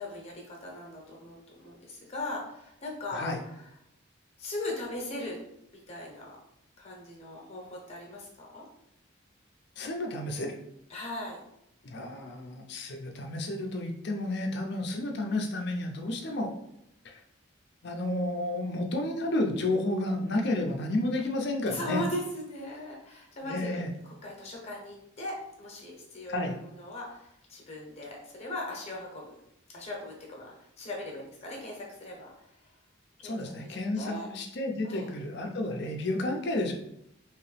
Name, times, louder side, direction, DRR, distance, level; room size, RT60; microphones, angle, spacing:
voice 1, 0.0-3.7 4.4-5.4 5.7-6.4 6.8-8.7 10.9-11.4 21.7-29.3 29.7-32.7 33.2-33.4 33.6-34.3 34.8-35.1, left 1 dB, 30° left, -1 dB, 0.9 m, -39 dB
voice 2, 9.8-10.6 11.8-16.5 17.0-17.2 17.8-22.0 23.4-23.9 26.3-26.6 33.2-36.7, left 1 dB, 55° left, 2 dB, 0.5 m, -31 dB
3.1 x 2.9 x 3.2 m, 0.77 s
head